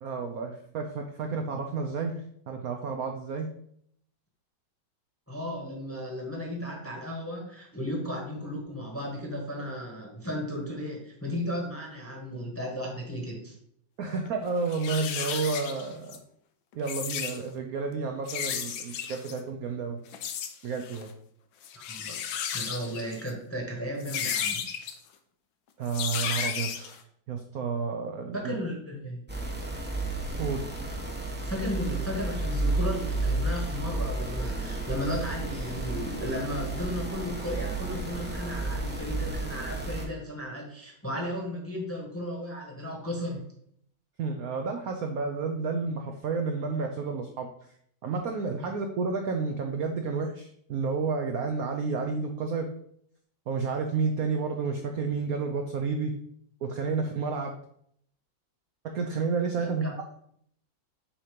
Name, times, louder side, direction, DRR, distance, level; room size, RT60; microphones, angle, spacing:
voice 1, 0.0-2.1 2.5-3.5 14.0-16.2 16.7-20.0 20.6-21.1 25.8-27.0 27.3-28.5 30.4-30.6 44.2-47.5 48.0-52.7 53.5-56.1 56.6-57.5 58.9-59.8, right 4 dB, 65° right, 4 dB, 0.9 m, -31 dB
voice 2, 5.3-13.6 21.7-22.2 22.5-24.7 28.3-29.2 31.4-43.4 59.6-59.9, equal, 10° left, -1 dB, 1.0 m, -35 dB
sound 1, 14.2-14.3 14.7-16.2 16.7-17.4 18.3-19.4 20.1-20.5 20.8-21.1 21.6-23.3 24.0-24.9 25.9-27.0, left 8 dB, 80° left, 1.4 m, -33 dB
sound 2, 29.3-40.1, right 2 dB, 10° right, 0.5 m, -32 dB
7.4 x 2.9 x 5.1 m, 0.67 s
omnidirectional pair, 2.1 m